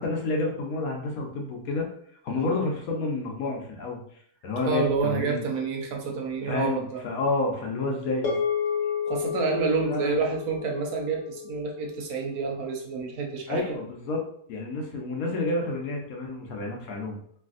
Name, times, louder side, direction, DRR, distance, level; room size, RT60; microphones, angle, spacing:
voice 1, 0.0-1.9 2.2-4.0 4.4-5.4 6.5-8.3 9.8-10.2 13.5-14.2 14.5-17.2, left 3 dB, 70° left, 1 dB, 1.1 m, -29 dB
voice 2, 4.7-7.0 9.1-13.8, right 4 dB, 75° right, 1 dB, 1.1 m, -28 dB
sound 1, 8.2-12.7, left 7 dB, 85° left, 1.4 m, -31 dB
3.3 x 2.5 x 2.4 m, 0.63 s
omnidirectional pair, 1.6 m